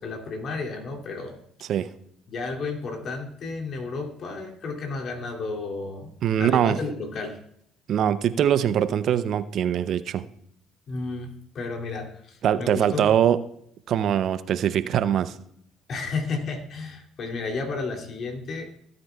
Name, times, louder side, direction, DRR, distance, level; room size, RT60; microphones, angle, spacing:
voice 1, 0.0-1.4 2.3-6.1 6.4-7.4 10.9-13.1 15.9-18.8, left 3 dB, 55° left, 1 dB, 2.5 m, -32 dB
voice 2, 6.2-6.8 7.9-10.2 12.4-13.4 13.9-15.3, right 9 dB, 60° right, 14 dB, 0.5 m, -22 dB
16.0 x 9.4 x 2.3 m, 0.69 s
hypercardioid pair, 60°, 0 cm